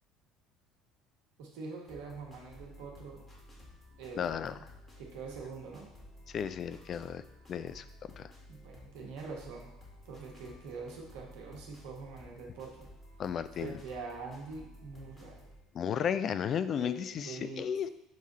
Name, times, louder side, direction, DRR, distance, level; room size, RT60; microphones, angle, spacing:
voice 1, 1.4-3.2 4.0-4.6 5.0-5.9 8.5-9.7 10.0-12.9 13.5-15.5 16.8-17.6, right 4 dB, 60° right, -1 dB, 1.3 m, -44 dB
sound 1, 1.9-15.6, left 1 dB, 20° left, 2.0 m, -54 dB
voice 2, 4.2-4.5 6.3-7.2 7.5-8.3 13.2-13.8 15.7-17.9, left 8 dB, 45° left, 13 dB, 0.3 m, -34 dB
6.3 x 3.6 x 4.2 m, 0.89 s
figure-of-eight pair, 60°, 0 cm